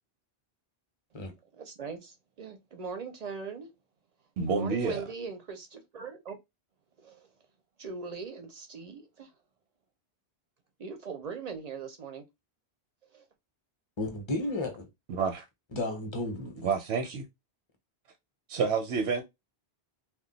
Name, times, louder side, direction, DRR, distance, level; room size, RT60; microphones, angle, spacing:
voice 1, 1.5-3.7 4.5-6.4 7.0-7.3 7.8-9.3 10.8-12.2 13.1-13.2, right 5 dB, 50° right, 0.5 m, -40 dB
voice 2, 4.4-5.0 15.1-15.4 16.6-17.2 18.5-19.2, right 5 dB, 80° right, 0.8 m, -29 dB
voice 3, 14.0-14.9 15.7-16.7, left 2 dB, 30° left, 0.7 m, -33 dB
2.3 x 2.2 x 3.8 m
omnidirectional pair, 1.1 m